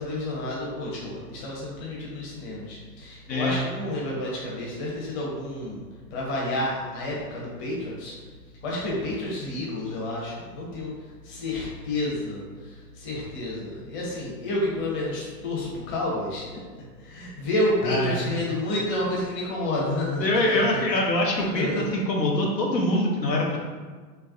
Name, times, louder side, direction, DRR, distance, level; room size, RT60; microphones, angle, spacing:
voice 1, 0.0-5.8 6.1-8.1 8.6-10.9 11.2-16.5 17.0-20.8 21.5-22.0, left 1 dB, 25° left, -5 dB, 0.9 m, -30 dB
voice 2, 17.8-18.2 20.2-23.6, left 1 dB, 90° left, -2 dB, 0.9 m, -24 dB
3.4 x 3.0 x 2.3 m, 1.4 s
hypercardioid pair, 120°, 49 cm